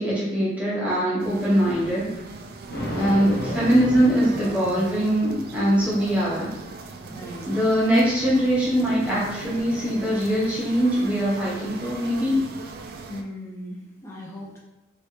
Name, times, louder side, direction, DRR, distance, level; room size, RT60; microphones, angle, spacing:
voice 1, 0.0-2.1 2.9-6.5 7.5-12.4, equal, 5° right, -8 dB, 1.1 m, -22 dB
sound 1, 1.2-13.2, right 3 dB, 50° right, 0.3 m, -38 dB
Thunder, 2.7-5.2, left 1 dB, 50° left, 0.8 m, -33 dB
voice 2, 2.8-3.3 7.1-7.5 13.1-14.6, equal, 15° left, -5 dB, 0.5 m, -38 dB
3.3 x 3.1 x 2.8 m, 0.94 s
head